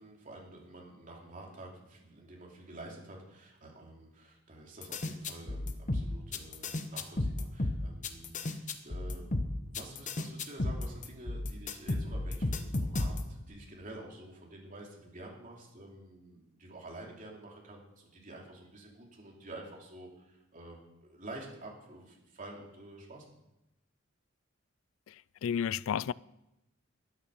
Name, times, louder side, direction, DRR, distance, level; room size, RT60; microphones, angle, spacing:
voice 1, 0.0-23.2, right 2 dB, 40° right, 3.0 m, -49 dB
sound 1, 4.8-13.4, left 2 dB, 40° left, 1.0 m, -33 dB
voice 2, 25.4-26.1, left 8 dB, 75° left, 0.3 m, -31 dB
13.0 x 8.5 x 6.9 m
head